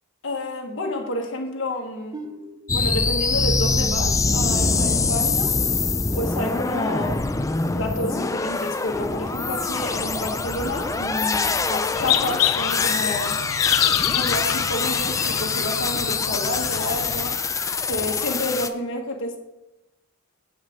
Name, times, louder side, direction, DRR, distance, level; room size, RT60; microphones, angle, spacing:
voice 1, 0.2-2.2 2.7-5.6 6.1-7.3 7.7-13.4 14.1-17.4 17.9-19.4, left 1 dB, 60° left, 1 dB, 1.4 m, -29 dB
sound 1, 2.1-6.2, right 1 dB, 20° right, 0.9 m, -29 dB
sound 2, 2.7-18.7, left 4 dB, 15° left, 0.4 m, -24 dB
sound 3, 11.9-17.4, left 13 dB, 85° left, 0.4 m, -26 dB
7.3 x 5.8 x 7.7 m, 0.96 s
head